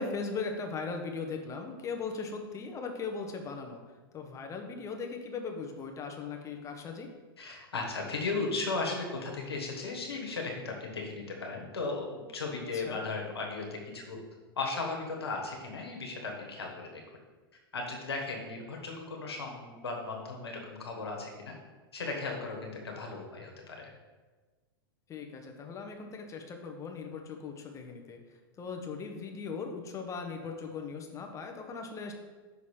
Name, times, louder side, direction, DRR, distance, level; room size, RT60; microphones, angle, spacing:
voice 1, 0.0-3.8 4.1-7.1 12.7-13.0 25.1-28.2 28.6-32.1, left 4 dB, 25° left, 3 dB, 0.9 m, -38 dB
voice 2, 7.4-14.2 14.6-17.0 17.7-21.5 21.9-23.9, left 3 dB, 90° left, 0 dB, 1.3 m, -36 dB
5.8 x 4.0 x 4.8 m, 1.3 s
hypercardioid pair, 110°, 13 cm